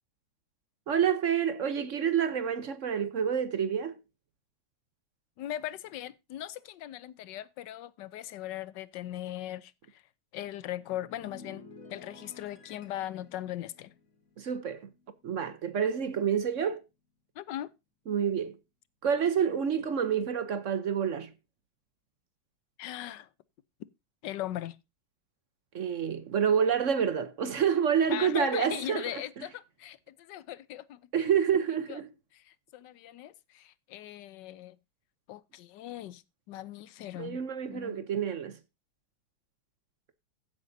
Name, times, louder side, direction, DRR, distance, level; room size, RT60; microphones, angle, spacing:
voice 1, 0.9-4.0 14.4-14.9 15.2-16.8 18.1-18.6 19.0-21.3 25.7-29.2 31.1-32.1 37.2-38.6, right 7 dB, 55° right, 0.9 m, -28 dB
voice 2, 5.4-10.0 10.3-13.9 17.4-17.7 22.8-23.3 24.2-24.8 28.1-31.0 31.9-32.0 32.3-34.8 35.3-36.2 36.5-37.4 37.7-38.1, left 13 dB, 75° left, 1.3 m, -39 dB
sound 1, 10.7-15.3 15.6-15.9, left 4 dB, 45° left, 1.7 m, -53 dB
15.5 x 8.3 x 2.7 m
omnidirectional pair, 1.9 m